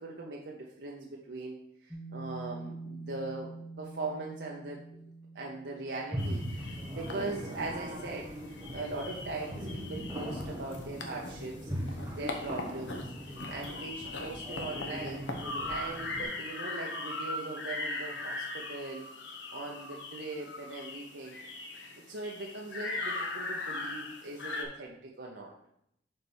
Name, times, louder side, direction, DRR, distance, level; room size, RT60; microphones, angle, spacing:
voice 1, 0.0-4.8 5.3-15.2 15.6-21.7 22.1-25.5, right 2 dB, 65° right, -2 dB, 0.8 m, -40 dB
sound 1, 1.9-11.4, right 3 dB, 10° left, 0.7 m, -48 dB
sound 2, 6.1-16.2, equal, 15° right, 1.1 m, -40 dB
sound 3, 6.2-24.6, left 2 dB, 75° left, 0.9 m, -40 dB
6.6 x 4.5 x 4.3 m, 0.75 s
head